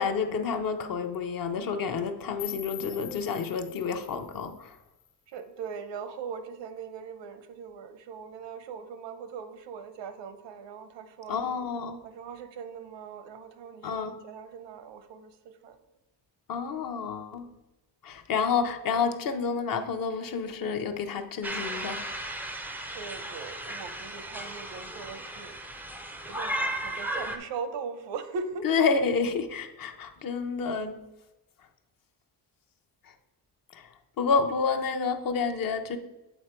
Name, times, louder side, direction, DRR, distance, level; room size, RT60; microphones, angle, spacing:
voice 1, 0.0-4.8 11.3-12.0 13.8-14.1 16.5-17.5 18.0-22.1 28.6-31.0 33.0-33.1 33.7-33.9 34.2-36.0, left 5 dB, 55° left, 7 dB, 0.6 m, -29 dB
sound 1, 2.4-5.4, left 10 dB, 75° left, 1.2 m, -44 dB
voice 2, 5.3-11.4 12.0-15.8 22.9-25.5 26.3-28.7, right 5 dB, 90° right, 10 dB, 0.8 m, -40 dB
sound 2, 21.4-27.4, right 1 dB, 5° right, 0.3 m, -35 dB
8.0 x 4.3 x 4.4 m, 1.0 s
cardioid pair, 165°, 42 cm